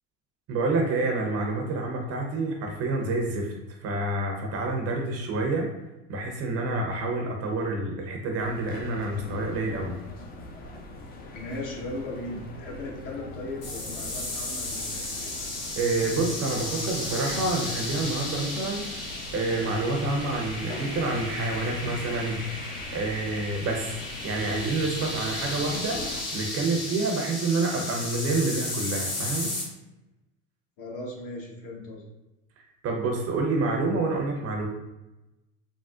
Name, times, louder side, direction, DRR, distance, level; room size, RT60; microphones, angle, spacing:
voice 1, 0.5-3.5 3.8-5.7 6.1-10.0 15.8-19.1 19.3-22.4 22.9-23.9 24.2-29.5 32.8-34.7, right 3 dB, 40° right, 1 dB, 0.6 m, -28 dB
sound 1, 8.4-26.2, left 3 dB, 25° left, 0.4 m, -42 dB
voice 2, 11.3-15.0 30.8-32.1, left 1 dB, 55° left, -3 dB, 1.1 m, -37 dB
sound 2, 13.6-29.6, left 2 dB, 85° left, 1.4 m, -34 dB
3.5 x 2.0 x 2.3 m, 0.99 s
supercardioid pair, 100°, 40 cm